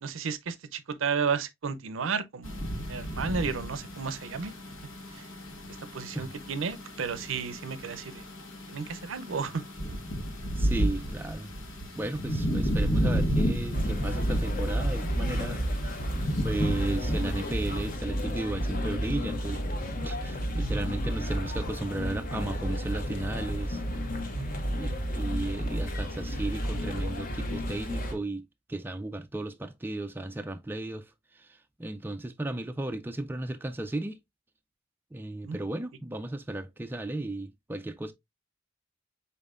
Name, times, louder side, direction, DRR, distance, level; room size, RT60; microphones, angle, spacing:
voice 1, 0.0-4.5 5.1-5.2 5.9-8.2 8.7-9.6 20.6-20.8 24.3-24.7 35.4-35.6, right 5 dB, 70° right, 0.5 m, -33 dB
sound 1, 2.4-17.9, equal, 75° left, 1.4 m, -32 dB
voice 2, 10.6-11.5 11.9-15.7 16.4-19.6 20.0-23.8 24.7-34.2 35.1-38.1, right 2 dB, 10° right, 0.3 m, -35 dB
sound 2, 13.7-28.1, equal, 45° left, 1.0 m, -31 dB
5.4 x 4.1 x 2.4 m
head